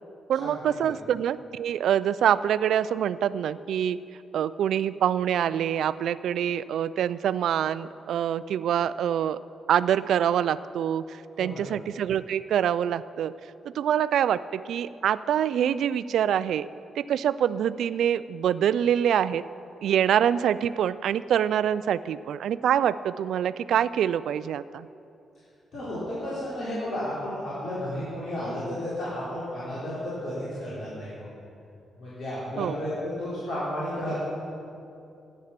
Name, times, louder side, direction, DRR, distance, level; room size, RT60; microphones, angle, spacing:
voice 1, 0.3-4.0 4.3-9.4 9.7-13.3 13.7-16.7 17.0-19.4 19.8-24.9 32.6-32.8, right 9 dB, 75° right, 16 dB, 0.3 m, -25 dB
voice 2, 25.7-31.3 32.0-34.1, left 1 dB, 55° left, -11 dB, 3.8 m, -32 dB
14.0 x 10.0 x 5.9 m, 2.7 s
wide cardioid pair, 150°, 0 cm